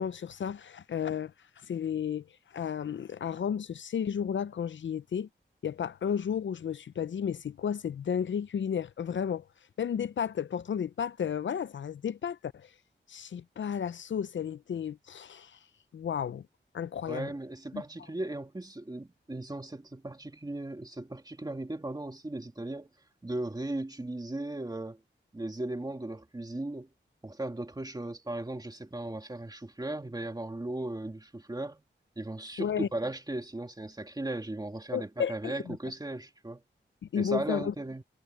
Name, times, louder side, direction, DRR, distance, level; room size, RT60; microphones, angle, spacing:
voice 1, 0.0-1.3 1.7-2.2 2.5-5.3 5.6-9.4 9.8-12.7 13.1-15.6 15.9-16.4 16.7-17.3 17.7-17.8 32.6-32.9 34.9-35.8 37.1-37.7, left 8 dB, 75° left, 0.5 m, -33 dB
voice 2, 17.1-22.9 23.2-25.0 25.3-26.9 27.2-31.8 32.2-36.6 37.1-38.0, right 2 dB, 20° right, 2.4 m, -37 dB
wide cardioid pair, 120°, 20 cm